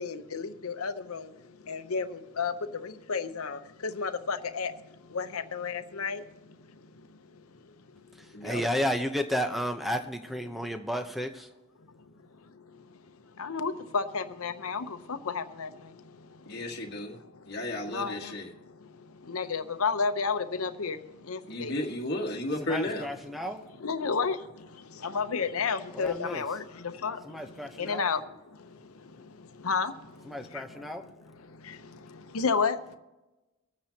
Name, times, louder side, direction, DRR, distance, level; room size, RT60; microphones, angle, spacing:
voice 1, 0.0-6.6 6.9-7.1 12.5-12.8 13.4-16.6 17.1-17.6 17.8-21.8 23.8-31.1 31.4-33.0, left 5 dB, 85° left, 0.8 m, -33 dB
voice 2, 8.4-11.3 22.6-23.6 25.9-26.4 27.2-28.1 30.3-31.0, equal, ahead, 0.8 m, -32 dB
voice 3, 16.5-17.2 17.4-18.5 21.5-23.1, left 1 dB, 50° left, 1.7 m, -33 dB
23.5 x 9.1 x 2.9 m
head